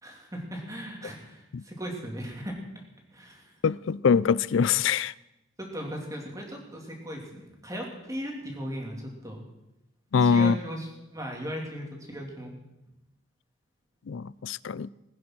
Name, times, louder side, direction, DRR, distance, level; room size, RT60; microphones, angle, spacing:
voice 1, 0.0-2.6 3.1-3.6 5.6-9.4 10.2-12.5, equal, 15° right, 3.1 m, -37 dB
voice 2, 3.6-5.1 10.1-10.6 14.1-14.9, left 6 dB, 65° left, 0.4 m, -23 dB
20.5 x 9.7 x 6.2 m
head